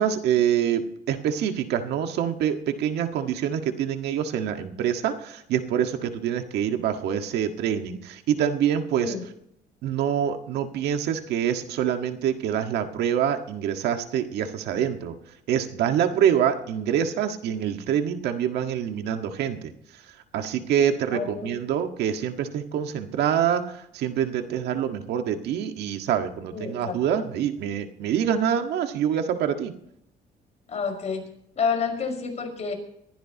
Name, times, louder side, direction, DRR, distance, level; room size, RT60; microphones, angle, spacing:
voice 1, 0.0-9.1 9.8-15.1 15.5-19.7 20.3-29.7, right 9 dB, 80° right, 6 dB, 1.7 m, -25 dB
voice 2, 21.1-21.5 26.5-26.9 30.7-31.3 31.6-32.7, left 5 dB, 40° left, 3 dB, 5.4 m, -29 dB
22.5 x 15.5 x 3.0 m, 0.74 s
cardioid pair, 110°, 17 cm